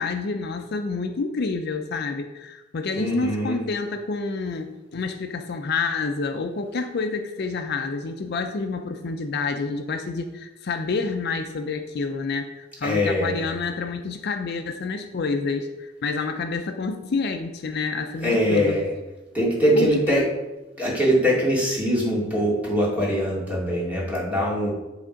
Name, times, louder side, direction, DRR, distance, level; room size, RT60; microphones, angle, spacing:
voice 1, 0.0-18.8 19.7-20.3, left 4 dB, 55° left, 6 dB, 0.5 m, -28 dB
voice 2, 2.9-3.6 12.8-13.4 18.2-18.9 19.3-20.2 20.8-24.7, equal, 10° right, -6 dB, 2.5 m, -22 dB
10.0 x 3.6 x 5.0 m, 1.1 s
head